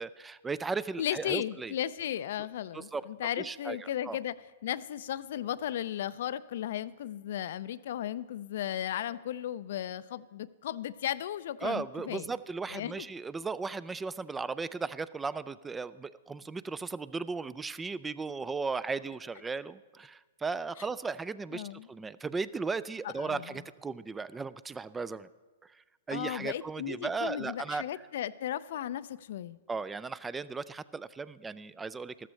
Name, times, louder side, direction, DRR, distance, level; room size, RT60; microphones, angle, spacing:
voice 1, 0.0-1.7 2.7-3.0 3.4-4.2 11.6-25.3 25.6-27.8 29.7-32.3, right 4 dB, 10° right, 17 dB, 0.3 m, -36 dB
voice 2, 1.0-4.3 4.6-12.3 12.7-13.1 21.5-21.9 23.0-23.6 26.1-29.6, left 11 dB, 65° left, 17 dB, 0.4 m, -35 dB
13.5 x 13.5 x 3.2 m, 1.3 s
hypercardioid pair, 125°, 0 cm